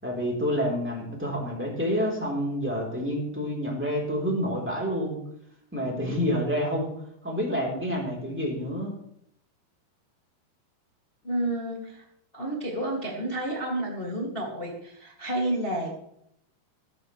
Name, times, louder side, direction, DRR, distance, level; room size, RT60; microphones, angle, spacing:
voice 1, 0.0-5.2 5.7-6.9 7.2-9.0, equal, 5° right, -2 dB, 2.6 m, -28 dB
voice 2, 11.2-12.0 12.3-16.0, right 1 dB, 40° left, -2 dB, 0.7 m, -30 dB
16.0 x 13.5 x 3.2 m, 0.72 s
omnidirectional pair, 5.4 m